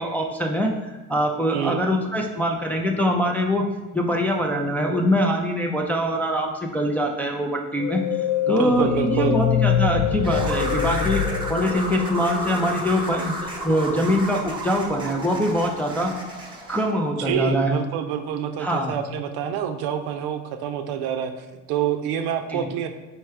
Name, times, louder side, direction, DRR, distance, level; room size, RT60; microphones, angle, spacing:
voice 1, 0.0-3.7 3.9-8.0 8.5-11.2 11.5-16.1 16.7-17.7 18.6-18.9 22.5-22.6, equal, 5° left, 0 dB, 0.4 m, -23 dB
voice 2, 1.5-1.8 8.6-9.4 17.2-22.9, right 9 dB, 65° right, 7 dB, 0.6 m, -27 dB
sound 1, 7.8-12.4, left 9 dB, 70° left, 0.5 m, -24 dB
sound 2, 10.2-16.9, right 1 dB, 10° right, 1.0 m, -32 dB
4.6 x 3.3 x 3.3 m, 1.2 s
hypercardioid pair, 80°, 42 cm